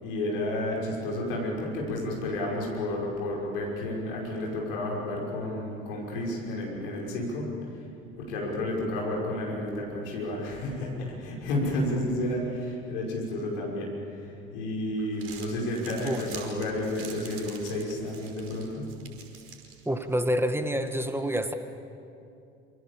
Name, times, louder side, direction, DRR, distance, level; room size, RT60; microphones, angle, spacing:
voice 1, 0.0-7.8 8.2-18.9, left 1 dB, 65° left, -2 dB, 6.3 m, -31 dB
Crumpling crinkling, 15.0-20.2, right 6 dB, 45° right, 5.3 m, -46 dB
voice 2, 19.9-21.5, equal, 10° right, 7 dB, 1.8 m, -27 dB
27.5 x 26.5 x 7.4 m, 2.6 s
figure-of-eight pair, 65°, 31 cm